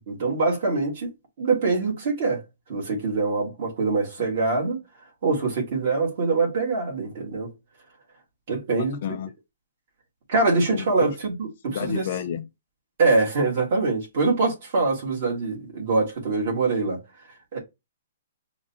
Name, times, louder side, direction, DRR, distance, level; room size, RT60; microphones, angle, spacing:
voice 1, 0.1-2.4 2.7-4.8 5.2-7.5 8.5-9.0 10.3-12.1 13.0-17.0 17.5-17.6, right 3 dB, 40° right, 1.5 m, -24 dB
voice 2, 8.8-9.3 10.7-10.9 11.7-12.5, left 9 dB, 40° left, 0.3 m, -31 dB
4.8 x 2.2 x 2.7 m
hypercardioid pair, 175°, 0 cm